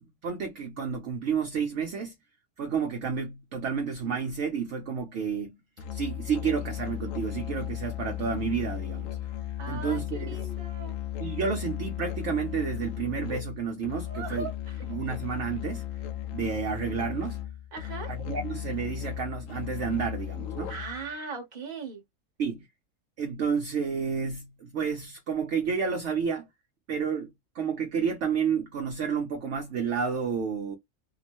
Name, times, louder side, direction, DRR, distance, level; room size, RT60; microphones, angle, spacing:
voice 1, 0.2-2.1 2.6-5.6 5.9-9.1 9.7-10.5 11.2-14.5 14.9-15.8 16.3-17.4 18.1-20.7 22.4-22.7 23.2-26.5 26.9-30.8, right 6 dB, 60° right, 0.8 m, -30 dB
Musical instrument, 5.8-21.1, left 12 dB, 65° left, 0.9 m, -36 dB
voice 2, 9.6-11.0 14.1-14.8 17.7-18.1 20.7-22.0, right 4 dB, 35° right, 0.9 m, -39 dB
3.0 x 2.0 x 2.8 m
omnidirectional pair, 1.6 m